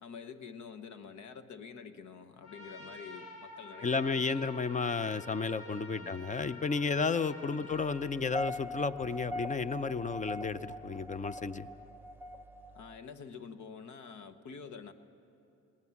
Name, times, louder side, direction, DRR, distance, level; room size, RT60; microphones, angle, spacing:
voice 1, 0.0-4.5 5.9-6.2 7.5-7.7 12.7-14.9, left 6 dB, 70° left, 10 dB, 1.2 m, -47 dB
Trumpet, 2.4-8.1, left 2 dB, 50° left, 6.6 m, -49 dB
voice 2, 3.8-11.7, left 4 dB, 25° left, 14 dB, 0.6 m, -32 dB
sound 1, 8.1-13.0, equal, 5° right, 0.8 m, -41 dB
19.5 x 19.0 x 7.2 m, 2.8 s
cardioid pair, 90°, 30 cm